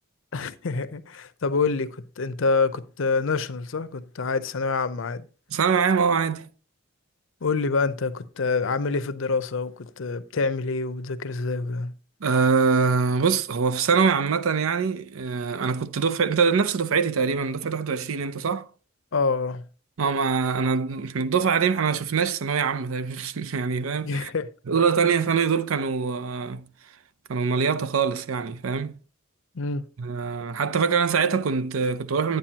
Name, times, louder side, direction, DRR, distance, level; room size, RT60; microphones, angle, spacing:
voice 1, 0.3-5.3 7.4-11.9 19.1-19.6 24.0-24.5 29.5-29.8, left 4 dB, 65° left, 0.6 m, -26 dB
voice 2, 5.5-6.5 12.2-18.6 20.0-24.3 24.7-26.6 27.3-28.9 30.0-32.4, right 5 dB, 75° right, 0.6 m, -24 dB
9.3 x 8.9 x 2.8 m
head